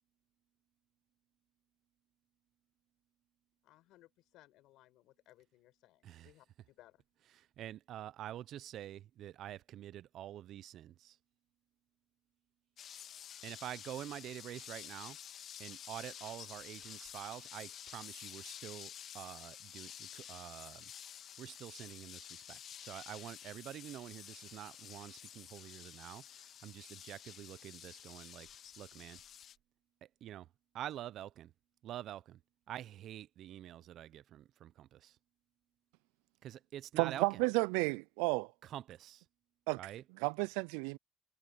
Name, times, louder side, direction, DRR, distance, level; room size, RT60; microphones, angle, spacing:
voice 1, 3.6-7.0, left 16 dB, 75° left, 6.1 m, -63 dB
voice 2, 7.4-11.2 13.4-15.2 15.6-20.9 21.4-28.5 28.8-29.2 30.0-30.5 30.7-31.5 31.8-32.4 32.7-35.2 36.4-37.4 38.6-39.2 39.8-40.0, right 12 dB, 65° right, 0.7 m, -47 dB
sound 1, 12.8-29.6, left 10 dB, 55° left, 1.6 m, -51 dB
voice 3, 37.0-38.5 39.7-39.8 40.2-41.0, right 28 dB, 85° right, 0.3 m, -32 dB
supercardioid pair, 80°, 0 cm